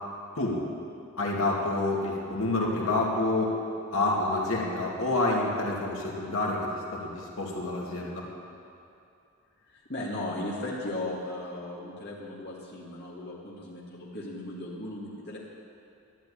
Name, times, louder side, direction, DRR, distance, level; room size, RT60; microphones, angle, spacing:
voice 1, 1.2-3.5 3.9-8.2, left 2 dB, 75° left, -3 dB, 2.6 m, -28 dB
voice 2, 9.7-15.4, left 1 dB, 50° left, -6 dB, 2.1 m, -36 dB
12.5 x 11.0 x 8.6 m, 2.6 s
head